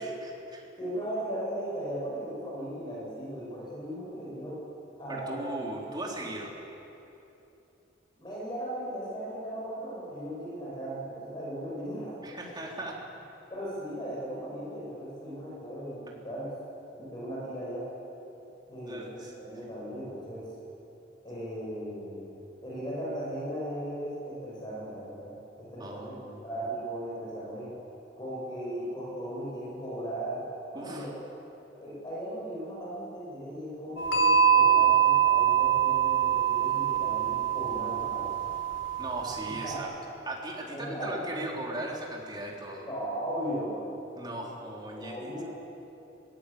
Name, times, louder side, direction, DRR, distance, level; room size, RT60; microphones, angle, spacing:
voice 1, 0.0-0.6 5.1-6.5 12.2-13.0 18.8-19.3 25.8-26.4 30.7-31.1 39.0-39.9 40.3-42.9 44.2-45.4, right 1 dB, 25° right, -2 dB, 3.6 m, -38 dB
voice 2, 0.8-4.6 5.0-5.9 8.2-12.2 13.5-16.5 16.9-17.8 18.7-20.5 21.2-22.3 22.6-26.1 26.4-27.7 28.2-30.4 30.7-31.1 31.8-38.4 39.6-39.8 40.7-41.1 42.8-43.8 44.9-45.4, right 1 dB, 25° left, -6 dB, 6.4 m, -37 dB
sound 1, 34.0-39.8, right 9 dB, 85° left, 3.3 m, -24 dB
21.0 x 18.0 x 8.5 m, 3.0 s
head